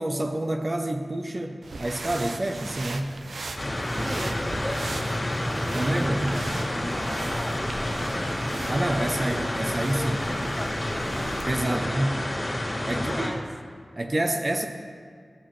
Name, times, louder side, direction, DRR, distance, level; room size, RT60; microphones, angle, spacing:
voice 1, 0.0-3.2 3.9-4.1 5.7-6.3 8.7-10.2 11.5-12.2 12.8-13.3 14.0-14.7, right 1 dB, 35° right, 4 dB, 0.6 m, -28 dB
sound 1, 1.6-11.5, right 3 dB, 80° right, 0.5 m, -39 dB
sound 2, 3.6-13.3, left 1 dB, 40° left, 1.9 m, -29 dB
voice 2, 3.9-8.3 9.0-9.1 9.4-11.2 11.7-12.1 12.9-13.5, equal, 5° left, 5 dB, 0.7 m, -38 dB
13.0 x 6.3 x 3.1 m, 2.1 s
wide cardioid pair, 70°, 0 cm